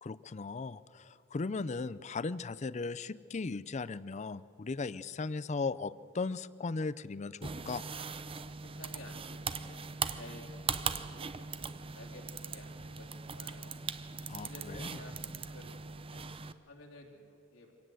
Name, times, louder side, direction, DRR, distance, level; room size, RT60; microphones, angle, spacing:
voice 1, 0.0-7.8 14.3-14.9, left 4 dB, 35° left, 17 dB, 0.5 m, -37 dB
sound 1, 7.4-16.5, right 5 dB, 25° right, 0.6 m, -40 dB
voice 2, 8.6-13.7 14.4-16.3 16.6-17.7, left 2 dB, 65° left, 0 dB, 3.2 m, -54 dB
25.0 x 18.0 x 7.8 m, 2.6 s
head